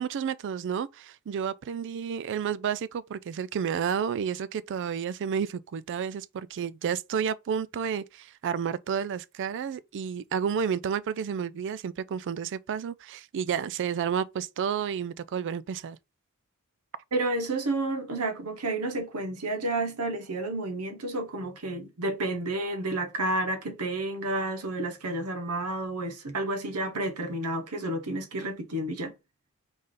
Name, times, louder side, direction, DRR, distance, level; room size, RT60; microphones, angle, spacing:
voice 1, 0.0-16.0, right 7 dB, 55° right, 0.3 m, -31 dB
voice 2, 17.1-29.1, right 2 dB, 85° right, 1.0 m, -30 dB
4.0 x 3.4 x 3.7 m
head